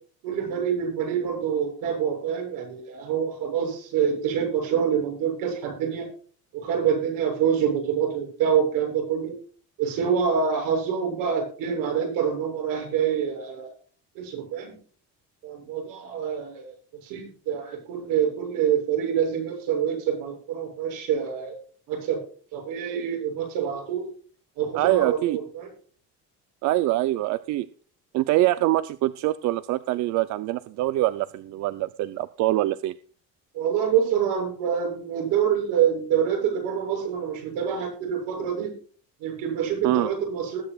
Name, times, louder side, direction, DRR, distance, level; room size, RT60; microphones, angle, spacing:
voice 1, 0.2-6.1 6.5-9.4 9.8-13.7 14.2-14.7 15.4-16.7 17.0-21.5 21.9-22.2 22.5-24.0 24.6-25.7 33.5-38.7 39.2-40.6, right 8 dB, 85° right, 2 dB, 7.3 m, -26 dB
voice 2, 24.7-25.4 26.6-27.7 28.1-32.9 39.8-40.1, right 15 dB, 60° right, 14 dB, 0.7 m, -24 dB
20.0 x 10.0 x 2.4 m, 0.42 s
cardioid pair, 165°, 32 cm